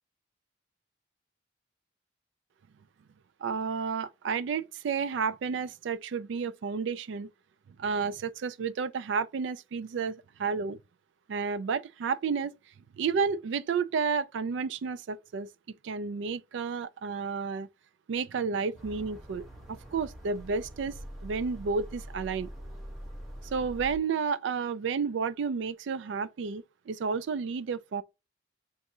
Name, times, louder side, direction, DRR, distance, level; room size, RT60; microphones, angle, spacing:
voice 1, 3.4-7.3 7.8-10.8 11.3-12.5 13.0-15.5 15.8-17.7 18.1-21.0 21.2-22.5 23.5-28.0, right 5 dB, 70° right, 0.3 m, -31 dB
sound 1, 18.7-24.0, equal, ahead, 0.9 m, -44 dB
5.8 x 2.6 x 2.6 m
head